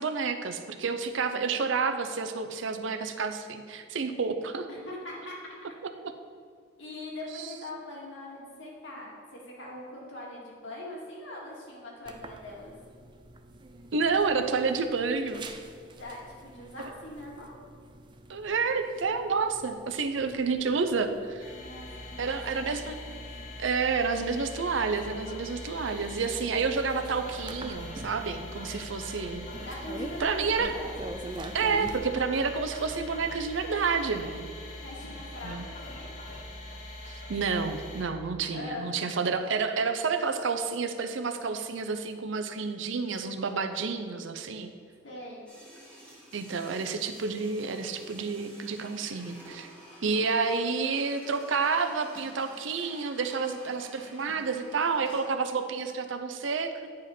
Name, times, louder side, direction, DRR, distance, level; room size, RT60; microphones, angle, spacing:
voice 1, 0.0-4.7 13.9-15.5 18.3-21.5 22.2-23.0 23.6-29.5 30.2-30.7 31.5-34.5 35.4-35.7 37.1-44.7 46.3-49.7 50.0-56.9, right 4 dB, 75° right, 8 dB, 0.6 m, -29 dB
voice 2, 4.7-5.5 6.8-12.7 15.9-17.6 21.5-22.9 29.6-30.9 34.7-36.1 38.5-38.9 45.0-45.4, left 1 dB, 70° left, -3 dB, 1.9 m, -42 dB
sound 1, 12.1-32.0, right 2 dB, 25° right, 0.4 m, -46 dB
sound 2, 21.4-38.0, left 1 dB, 40° left, 1.3 m, -42 dB
sound 3, 45.5-55.2, equal, 5° left, 1.5 m, -51 dB
9.5 x 4.9 x 4.4 m, 2.1 s
head